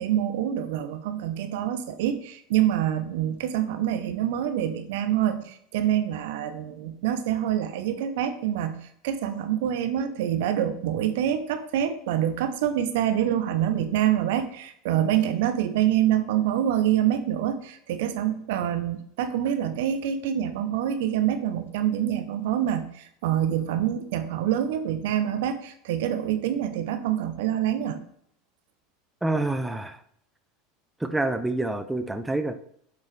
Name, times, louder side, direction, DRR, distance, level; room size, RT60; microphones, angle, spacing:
voice 1, 0.0-28.0, right 10 dB, 65° right, 10 dB, 0.7 m, -26 dB
voice 2, 29.2-30.0 31.0-32.5, right 2 dB, 10° right, 8 dB, 0.7 m, -27 dB
7.5 x 5.5 x 3.3 m, 0.68 s
hypercardioid pair, 80°, 0 cm